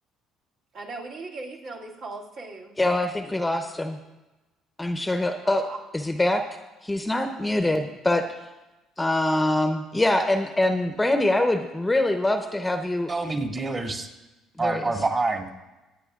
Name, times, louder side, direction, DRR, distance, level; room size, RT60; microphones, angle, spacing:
voice 1, 0.7-2.7 5.4-5.8, right 3 dB, 60° right, -2 dB, 2.3 m, -38 dB
voice 2, 2.8-4.0 4.8-5.6 5.9-6.4 6.8-8.2 9.0-13.1 14.6-14.9, left 1 dB, 10° left, 6 dB, 0.9 m, -24 dB
voice 3, 13.1-14.1 14.6-15.5, right 3 dB, 30° right, 1 dB, 2.1 m, -26 dB
24.5 x 8.9 x 2.5 m, 1.1 s
supercardioid pair, 90°, 0 cm